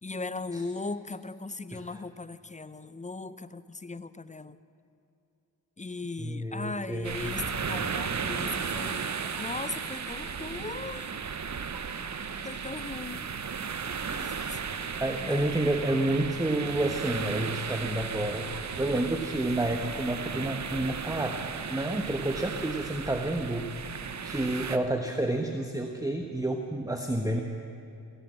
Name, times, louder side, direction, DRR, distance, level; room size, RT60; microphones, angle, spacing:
voice 1, 0.0-4.6 5.8-9.1 9.4-11.1 12.4-13.2 14.0-14.8 15.2-15.5, left 3 dB, 20° left, 15 dB, 0.6 m, -38 dB
voice 2, 1.7-2.0 6.2-7.3 15.0-18.5 18.8-21.4 21.7-23.7 24.2-27.4, right 1 dB, 10° right, 4 dB, 1.1 m, -29 dB
sound 1, 7.0-24.8, right 6 dB, 40° right, 0.9 m, -35 dB
sound 2, 7.0-19.1, right 5 dB, 75° right, 1.3 m, -52 dB
15.5 x 11.5 x 7.5 m, 2.8 s
cardioid pair, 50°, 41 cm